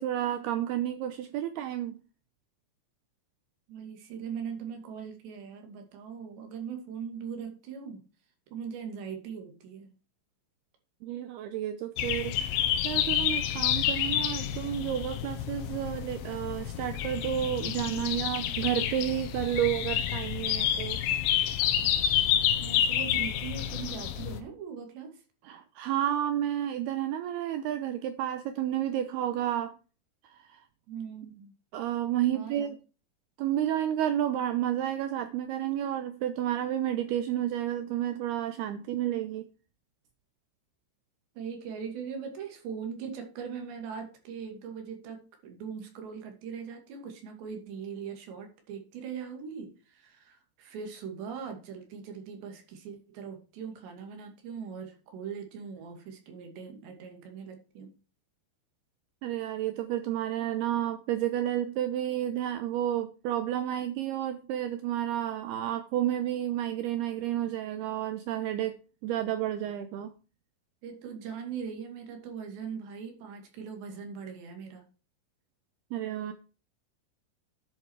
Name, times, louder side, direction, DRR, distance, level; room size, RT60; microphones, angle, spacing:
voice 1, 0.0-2.0 11.0-21.0 25.4-29.7 30.2-30.6 31.7-32.8 33.4-39.5 59.2-68.8 69.0-70.1 75.9-76.3, right 11 dB, 90° right, 9 dB, 2.2 m, -31 dB
voice 2, 3.7-8.1 8.5-9.9 22.6-25.2 30.9-31.5 32.3-32.7 41.4-57.9 70.8-74.9, right 6 dB, 65° right, 4 dB, 4.6 m, -40 dB
sound 1, 12.0-24.4, left 10 dB, 90° left, 3.7 m, -29 dB
10.5 x 8.7 x 4.7 m, 0.35 s
omnidirectional pair, 5.6 m